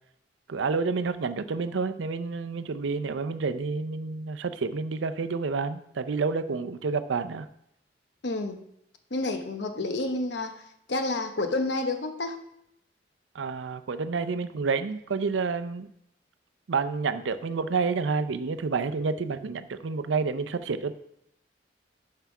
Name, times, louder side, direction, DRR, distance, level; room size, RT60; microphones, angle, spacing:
voice 1, 0.5-7.5 13.3-15.9 16.7-21.0, right 4 dB, 85° right, 11 dB, 0.5 m, -29 dB
voice 2, 8.2-8.6 9.1-10.6 10.9-12.4, left 2 dB, 70° left, 7 dB, 0.9 m, -29 dB
5.8 x 5.5 x 6.0 m, 0.77 s
head